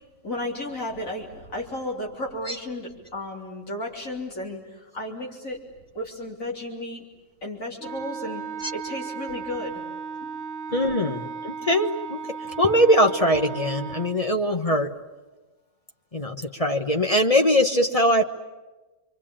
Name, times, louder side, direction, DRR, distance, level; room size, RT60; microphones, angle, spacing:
voice 1, 0.2-5.6 5.9-7.0 7.4-8.4 8.7-9.8 10.2-10.3 10.7-10.8 14.7-14.8, left 1 dB, 80° left, -1 dB, 4.2 m, -33 dB
Wind instrument woodwind instrument, 7.8-14.2, right 5 dB, 50° right, 1.4 m, -35 dB
voice 2, 10.7-12.2 12.6-14.9 16.1-18.2, equal, 30° left, 4 dB, 1.2 m, -21 dB
27.5 x 24.5 x 8.8 m, 1.1 s
omnidirectional pair, 1.4 m